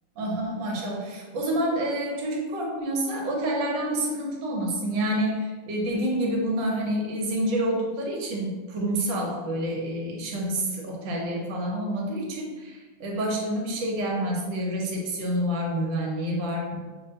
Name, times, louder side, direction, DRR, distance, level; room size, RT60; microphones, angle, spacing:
voice 1, 0.2-16.8, right 1 dB, 70° right, -1 dB, 1.4 m, -28 dB
5.4 x 2.1 x 2.7 m, 1.3 s
omnidirectional pair, 2.3 m